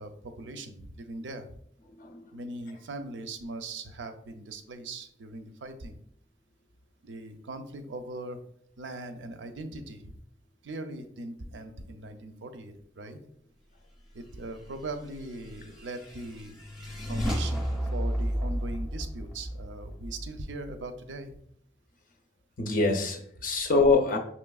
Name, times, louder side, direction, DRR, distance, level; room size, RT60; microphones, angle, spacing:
voice 1, 0.0-1.6 2.3-6.0 7.0-8.4 8.8-10.2 10.6-13.2 14.1-16.6 17.1-21.3, right 2 dB, 90° right, 7 dB, 0.5 m, -40 dB
sound 1, 15.1-20.7, equal, ahead, 0.6 m, -32 dB
voice 2, 22.6-24.2, left 3 dB, 50° left, 3 dB, 0.4 m, -24 dB
5.7 x 3.0 x 2.3 m, 0.68 s
head